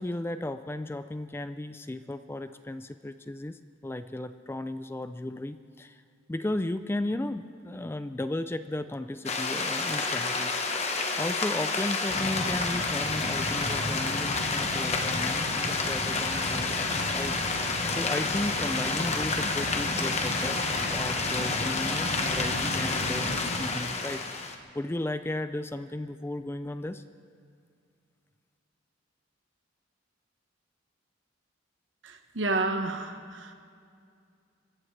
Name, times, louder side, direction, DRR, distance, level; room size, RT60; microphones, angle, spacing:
voice 1, 0.0-6.0 6.3-10.5 11.2-17.4 17.9-20.6 20.9-27.0, left 1 dB, 10° left, 11 dB, 0.3 m, -35 dB
sound 1, 9.3-24.6, left 3 dB, 35° left, 1.1 m, -29 dB
sound 2, 12.1-23.6, equal, 80° left, 3.2 m, -36 dB
voice 2, 32.0-33.5, right 2 dB, 65° right, 6 dB, 1.1 m, -30 dB
25.0 x 15.0 x 3.3 m, 2.3 s
head